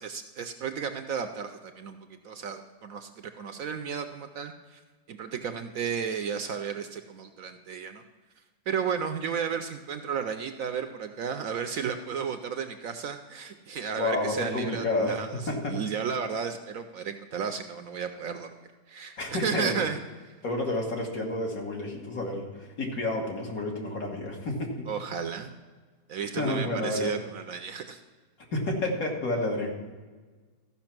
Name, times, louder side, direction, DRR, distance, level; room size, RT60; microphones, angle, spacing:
voice 1, 0.0-4.8 5.1-8.0 8.7-18.5 18.9-20.0 24.9-25.5 26.1-28.0, right 7 dB, 65° right, 7 dB, 0.9 m, -33 dB
voice 2, 14.0-15.8 19.2-19.8 20.4-24.9 26.4-27.2 28.5-29.7, left 2 dB, 60° left, -1 dB, 2.1 m, -30 dB
13.5 x 5.8 x 5.9 m, 1.4 s
omnidirectional pair, 1.8 m